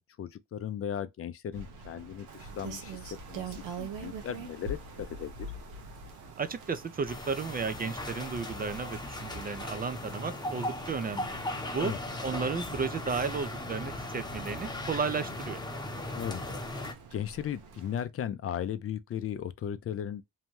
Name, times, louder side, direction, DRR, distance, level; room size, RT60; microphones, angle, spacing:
voice 1, 0.0-5.5 11.8-12.0 16.1-20.2, left 9 dB, 45° left, 0.5 m, -37 dB
Rain, 1.5-18.1, right 3 dB, 85° right, 0.8 m, -46 dB
sound 1, 2.3-12.5, right 3 dB, 65° right, 1.3 m, -54 dB
voice 2, 6.4-11.4 11.7-11.9 12.2-15.6, right 5 dB, 30° right, 0.5 m, -33 dB
sound 2, 7.1-16.9, left 2 dB, 15° left, 0.9 m, -38 dB
2.7 x 2.1 x 3.0 m
supercardioid pair, 70°, 31 cm